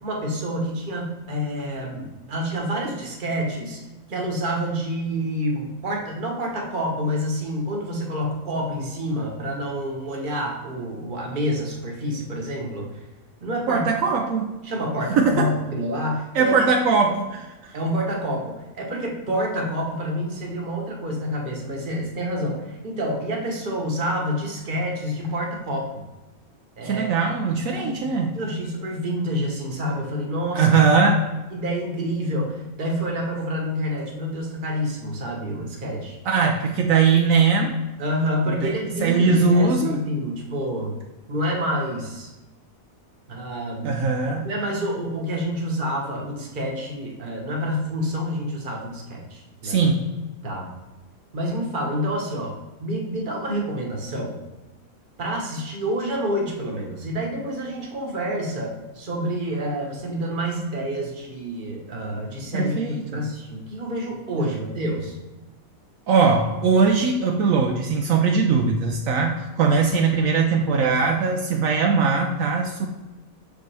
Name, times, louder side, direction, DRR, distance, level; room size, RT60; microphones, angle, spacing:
voice 1, 0.0-3.8 4.1-12.9 13.4-13.9 14.6-16.6 17.7-26.0 26.8-27.1 27.7-30.7 31.5-36.2 38.0-41.0 41.3-42.3 43.3-43.9 44.4-49.8 50.4-50.7 51.3-52.5 52.8-54.3 55.2-65.1, equal, 40° right, 0 dB, 1.2 m, -28 dB
voice 2, 13.7-14.5 15.2-15.5 16.3-17.7 26.8-28.4 30.5-31.2 36.2-37.7 38.5-40.0 43.8-44.5 49.6-50.0 62.5-63.2 66.1-72.9, right 4 dB, 75° right, 2 dB, 1.0 m, -20 dB
6.5 x 5.2 x 3.3 m, 1.1 s
omnidirectional pair, 1.5 m